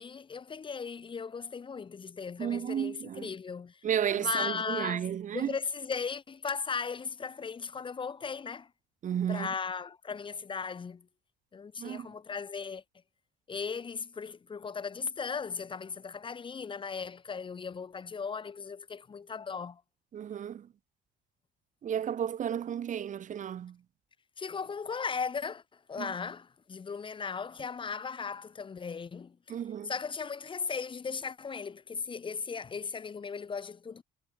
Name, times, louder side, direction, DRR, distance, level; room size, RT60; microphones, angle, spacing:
voice 1, 0.0-3.8 4.1-5.1 5.3-8.7 9.3-11.1 11.5-12.8 13.5-19.8 24.4-29.6 29.8-34.0, left 5 dB, 30° left, 1.6 m, -37 dB
voice 2, 2.4-3.3 3.8-5.6 9.0-9.5 11.8-12.1 20.1-20.7 21.8-23.8 26.0-26.1 29.5-29.9, right 9 dB, 50° right, 1.8 m, -33 dB
cardioid pair, 110°, 17 cm